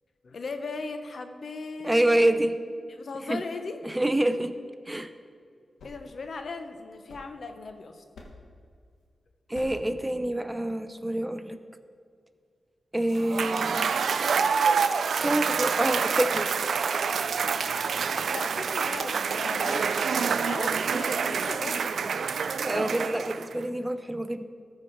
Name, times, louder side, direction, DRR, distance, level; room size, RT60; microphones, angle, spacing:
voice 1, 0.2-2.4 2.9-3.8 5.8-8.0 18.3-22.8, left 3 dB, 65° left, 7 dB, 0.8 m, -38 dB
voice 2, 1.8-2.5 3.3-3.4 3.8-4.5 4.9-5.1 9.5-11.6 12.9-13.9 15.2-16.5 22.6-24.5, right 1 dB, 15° right, 10 dB, 0.6 m, -26 dB
sound 1, 5.5-7.7 8.1-8.6 9.5-10.0, left 2 dB, 85° left, 1.2 m, -49 dB
Cheering / Applause / Crowd, 13.2-23.6, right 6 dB, 80° right, 0.3 m, -27 dB
14.0 x 4.8 x 4.4 m, 2.2 s
cardioid pair, 60°, 0 cm